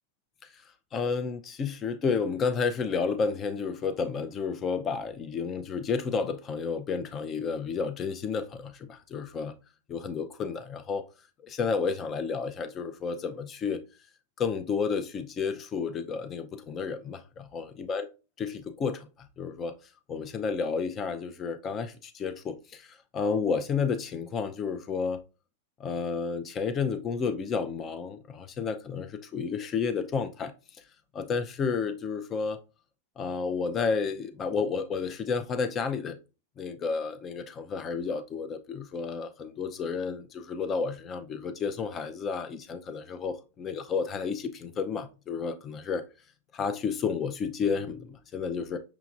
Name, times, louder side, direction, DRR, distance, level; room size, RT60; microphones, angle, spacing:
voice 1, 0.9-9.5 9.9-11.0 11.4-13.8 14.4-18.1 18.4-19.1 19.4-19.7 20.1-25.2 25.8-30.5 31.1-32.6 33.2-36.2 36.6-46.0 46.5-48.8, left 5 dB, 25° left, 0.5 m, -31 dB
5.9 x 2.8 x 2.4 m
supercardioid pair, 150°, 0 cm